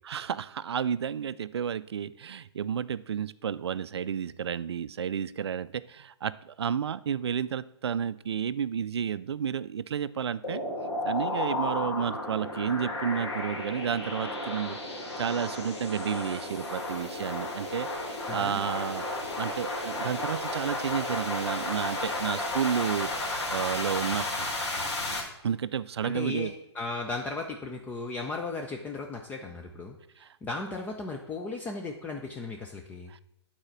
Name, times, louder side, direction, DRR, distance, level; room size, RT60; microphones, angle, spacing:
voice 1, 0.0-10.6 11.1-19.1 19.4-24.2 25.4-26.5 30.2-30.3 33.1-33.2, right 8 dB, 65° right, 16 dB, 0.4 m, -31 dB
sound 1, 10.4-25.2, left 2 dB, 70° left, 2.6 m, -33 dB
voice 2, 18.3-18.6 26.0-30.0 30.4-33.1, left 3 dB, 10° left, 2 dB, 0.5 m, -36 dB
8.8 x 4.2 x 5.8 m, 0.87 s
figure-of-eight pair, 125°, 15 cm